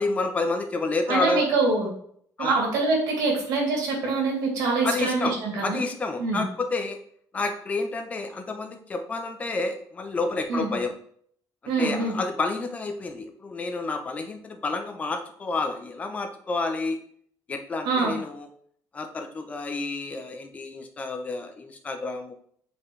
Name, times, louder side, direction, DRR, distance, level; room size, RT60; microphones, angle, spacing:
voice 1, 0.0-1.5 2.4-2.6 4.8-5.4 5.6-7.0 7.3-10.9 11.8-17.0 17.5-18.5 18.9-22.3, left 3 dB, 20° left, 6 dB, 0.7 m, -29 dB
voice 2, 1.1-1.9 2.4-5.8 6.2-6.4 10.5-10.7 11.7-12.2 17.8-18.1, right 3 dB, 70° right, -2 dB, 3.1 m, -24 dB
7.5 x 5.1 x 3.3 m, 0.63 s
cardioid pair, 175°, 7 cm